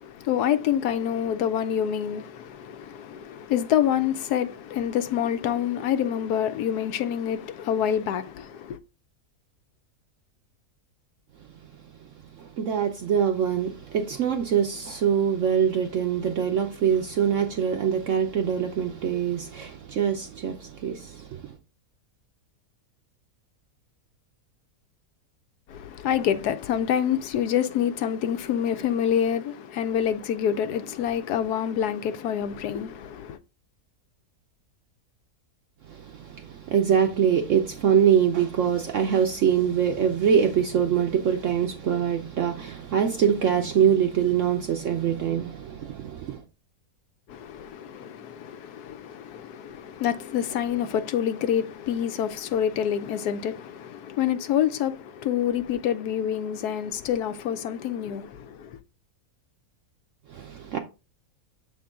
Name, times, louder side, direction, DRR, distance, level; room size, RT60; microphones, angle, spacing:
voice 1, 0.0-8.8 25.7-33.4 47.3-58.8, left 9 dB, 80° left, 1.1 m, -27 dB
voice 2, 12.4-21.5 35.9-46.4 60.3-60.8, right 8 dB, 65° right, 0.9 m, -24 dB
7.1 x 3.7 x 3.6 m
omnidirectional pair, 1.7 m